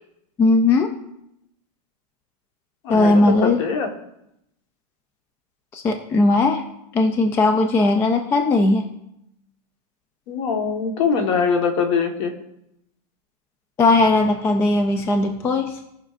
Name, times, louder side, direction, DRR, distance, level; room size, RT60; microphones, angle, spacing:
voice 1, 0.4-0.9 2.9-3.6 5.7-6.6 6.9-8.9 13.8-15.8, left 2 dB, 10° left, 6 dB, 0.3 m, -18 dB
voice 2, 2.8-3.9 10.3-12.3, left 5 dB, 50° left, 5 dB, 1.3 m, -22 dB
17.0 x 5.7 x 2.4 m, 0.83 s
supercardioid pair, 160°, 20 cm